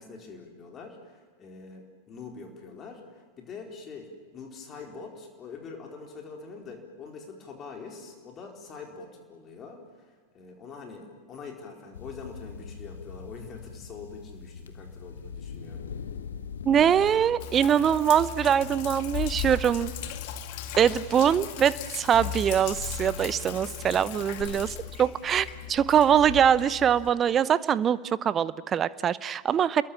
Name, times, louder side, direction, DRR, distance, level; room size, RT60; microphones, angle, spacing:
voice 1, 0.0-15.8 24.5-24.7, left 4 dB, 30° left, 2 dB, 4.6 m, -44 dB
sound 1, 11.9-17.4, left 6 dB, 65° left, 1.7 m, -41 dB
voice 2, 16.6-19.9 20.7-29.8, right 8 dB, 25° right, 18 dB, 0.7 m, -23 dB
Sink (filling or washing), 17.4-27.1, left 8 dB, 50° left, 1.9 m, -37 dB
29.5 x 22.0 x 7.3 m, 1.4 s
figure-of-eight pair, 90°, 0 cm